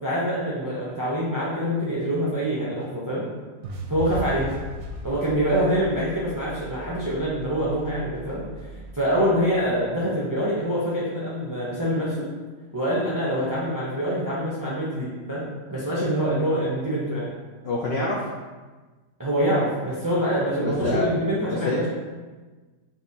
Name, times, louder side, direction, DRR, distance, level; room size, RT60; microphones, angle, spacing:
voice 1, 0.0-3.3 3.9-4.5 5.0-8.4 8.9-12.3 12.7-15.4 15.7-17.3 19.2-21.9, equal, 30° right, -7 dB, 0.3 m, -25 dB
sound 1, 3.6-9.8, right 2 dB, 70° right, 0.9 m, -38 dB
voice 2, 17.6-18.2 20.3-21.1 21.4-21.8, left 2 dB, 85° left, -3 dB, 0.5 m, -27 dB
5.2 x 2.8 x 2.7 m, 1.3 s
omnidirectional pair, 1.7 m